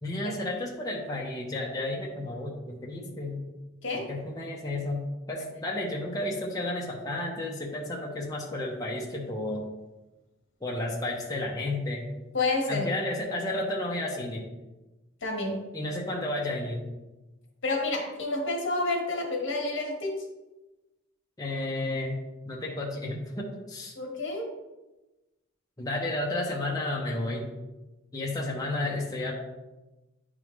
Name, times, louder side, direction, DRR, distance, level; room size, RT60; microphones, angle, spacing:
voice 1, 0.0-3.4 3.9-9.7 10.6-12.1 12.7-14.5 15.7-16.9 21.4-22.2 22.5-24.0 25.8-27.5 28.1-29.3, left 1 dB, 20° left, -3 dB, 0.8 m, -32 dB
voice 2, 12.3-12.9 15.2-15.6 17.6-20.2 23.9-24.5, left 2 dB, 65° left, 1 dB, 1.4 m, -29 dB
10.0 x 3.7 x 3.1 m, 1.1 s
head